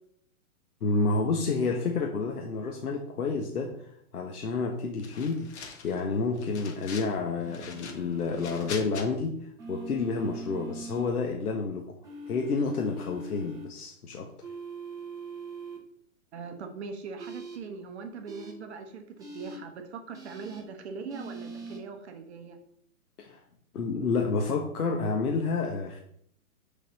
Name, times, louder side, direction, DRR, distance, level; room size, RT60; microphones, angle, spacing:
voice 1, 0.8-3.8 4.1-5.5 5.8-9.4 9.7-11.9 12.3-14.3 23.2-23.4 23.7-26.0, left 4 dB, 90° left, 2 dB, 1.4 m, -29 dB
sound 1, 5.0-6.0 6.4-7.1 7.5-9.1, left 5 dB, 50° left, 1.5 m, -42 dB
sound 2, 7.4-8.7 9.6-11.1 12.0-13.6 14.4-15.8 17.2-17.6 18.3-18.5 19.2-19.6 20.1-20.6 21.1-21.8, right 2 dB, 10° right, 1.0 m, -42 dB
voice 2, 16.3-22.6, right 5 dB, 50° right, 5 dB, 1.1 m, -41 dB
6.5 x 4.1 x 6.4 m, 0.67 s
hypercardioid pair, 155°, 44 cm